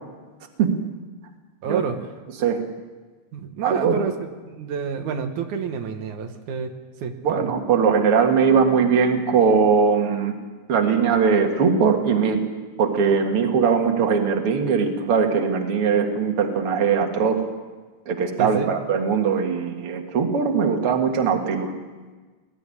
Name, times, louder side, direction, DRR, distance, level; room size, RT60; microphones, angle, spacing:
voice 1, 1.6-2.0 3.3-4.1 4.5-6.7 7.0-7.4 18.4-18.7, right 6 dB, 90° right, 5 dB, 2.8 m, -28 dB
voice 2, 3.6-4.0 7.2-10.3 10.7-12.4 12.8-17.5 18.1-21.7, right 6 dB, 50° right, 3 dB, 2.6 m, -20 dB
20.5 x 14.0 x 9.9 m, 1.3 s
omnidirectional pair, 3.3 m